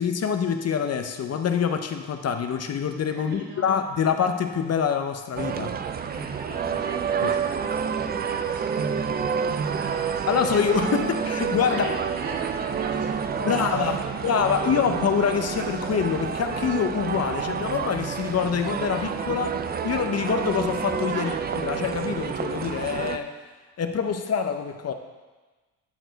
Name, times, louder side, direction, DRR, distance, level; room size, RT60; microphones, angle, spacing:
voice 1, 0.0-5.7 7.2-7.3 10.3-11.9 13.5-13.9 14.2-19.6 19.8-21.3 21.6-23.3 23.8-24.9, left 7 dB, 35° left, 7 dB, 0.7 m, -25 dB
voice 2, 3.1-3.7 5.9-10.9 11.6-14.8 21.1-21.4, right 2 dB, 85° right, -4 dB, 2.5 m, -39 dB
sound 1, 5.4-23.2, right 7 dB, 25° right, 0.4 m, -29 dB
12.0 x 4.6 x 4.0 m, 1.2 s
supercardioid pair, 90°, 42 cm